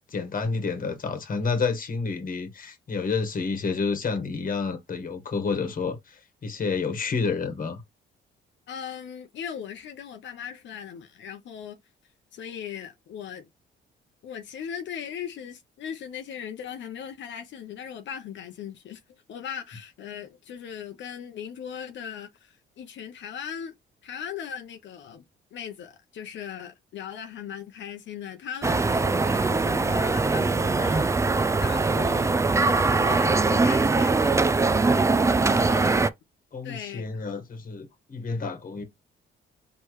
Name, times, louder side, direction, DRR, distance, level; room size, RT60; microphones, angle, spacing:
voice 1, 0.1-7.8 35.5-35.9 36.5-38.8, left 4 dB, 45° left, 1.3 m, -29 dB
voice 2, 8.7-11.8 12.3-13.5 14.2-19.0 19.3-23.7 24.0-25.2 25.5-31.3 31.6-32.3 32.9-34.2 35.4-36.0 36.6-37.2, left 8 dB, 70° left, 0.8 m, -38 dB
sound 1, 28.6-36.1, right 3 dB, 15° right, 0.4 m, -22 dB
4.6 x 3.1 x 3.0 m
cardioid pair, 90°, 20 cm